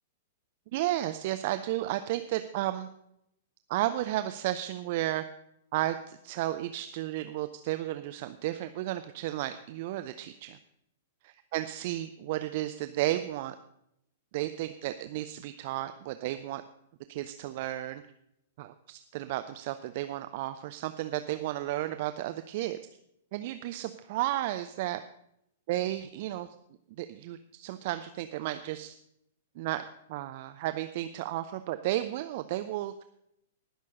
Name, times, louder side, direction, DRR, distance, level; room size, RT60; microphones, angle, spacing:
voice 1, 0.7-2.9 3.7-5.2 5.7-10.6 11.2-13.5 14.3-16.6 17.1-18.0 18.6-22.8 23.3-25.0 25.7-26.5 27.0-28.9 29.6-29.8 30.1-33.0, right 14 dB, 45° right, 10 dB, 0.5 m, -33 dB
19.0 x 6.4 x 5.3 m, 0.77 s
figure-of-eight pair, 105°, 0 cm